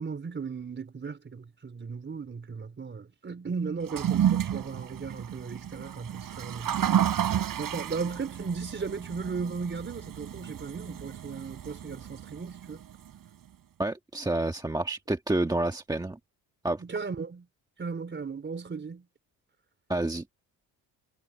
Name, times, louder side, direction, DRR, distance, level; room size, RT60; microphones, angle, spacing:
voice 1, 0.0-6.8 7.3-12.8 16.8-17.5 17.8-19.1, right 5 dB, 30° right, 4.4 m, -36 dB
Toilet flush, 3.8-13.1, right 10 dB, 55° right, 7.7 m, -31 dB
voice 2, 13.8-16.2 16.6-16.8 19.9-20.2, right 2 dB, 10° right, 1.6 m, -29 dB
cardioid pair, 110°, 39 cm